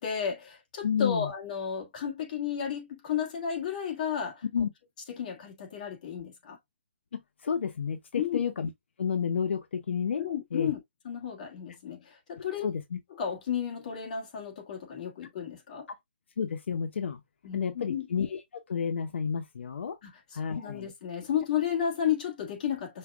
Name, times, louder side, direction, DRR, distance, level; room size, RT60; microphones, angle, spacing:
voice 1, 0.0-4.4 5.1-6.6 8.1-8.4 10.2-10.8 11.0-12.7 13.2-15.9 17.4-18.1 20.0-23.0, left 8 dB, 40° left, 1.5 m, -33 dB
voice 2, 0.8-1.3 4.5-4.7 7.1-8.7 9.0-10.2 10.5-10.7 12.6-13.0 16.4-17.2 17.5-18.4 18.7-20.0 20.3-20.9, left 7 dB, 80° left, 0.7 m, -30 dB
5.6 x 2.2 x 3.5 m
hypercardioid pair, 170°, 6 cm